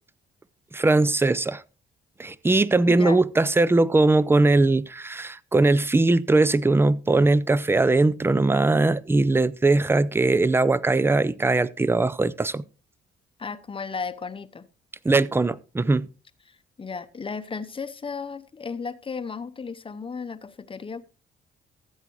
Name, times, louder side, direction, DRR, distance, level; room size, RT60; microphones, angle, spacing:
voice 1, 0.7-1.6 2.2-12.6 15.0-16.1, right 2 dB, 10° right, 0.5 m, -20 dB
voice 2, 2.9-3.2 13.4-14.7 16.5-21.0, left 5 dB, 25° left, 0.8 m, -34 dB
15.0 x 8.2 x 3.1 m
cardioid pair, 90°, 20 cm